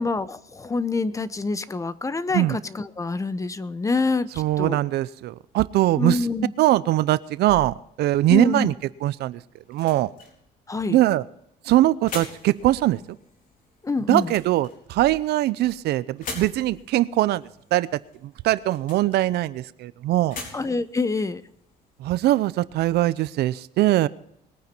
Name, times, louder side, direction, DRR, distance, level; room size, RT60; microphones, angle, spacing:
voice 1, 0.0-4.8 6.0-6.5 8.3-8.7 10.7-11.0 13.8-14.3 20.5-21.4, left 3 dB, 20° left, 15 dB, 0.8 m, -26 dB
voice 2, 4.4-6.2 6.6-8.7 9.0-9.4 9.7-10.1 10.9-11.2 11.6-13.0 14.1-17.4 17.7-17.9 18.2-20.4 22.0-24.1, right 15 dB, 75° right, 17 dB, 0.6 m, -21 dB
sound 1, 9.2-22.4, left 4 dB, 55° left, 4.3 m, -44 dB
21.5 x 9.5 x 4.5 m, 0.75 s
cardioid pair, 110°, 17 cm